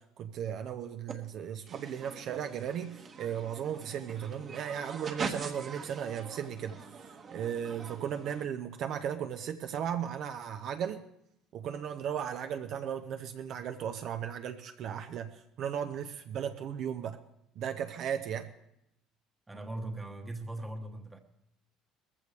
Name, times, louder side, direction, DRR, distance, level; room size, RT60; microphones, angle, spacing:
voice 1, 0.0-11.0 11.5-17.2 17.6-18.5, right 8 dB, 45° right, 0.7 m, -36 dB
sound 1, 1.1-1.2 1.7-8.5, right 5 dB, 30° right, 1.3 m, -43 dB
voice 2, 19.5-21.2, right 2 dB, 10° right, 1.2 m, -39 dB
20.0 x 15.0 x 3.4 m
cardioid pair, 165°, 0 cm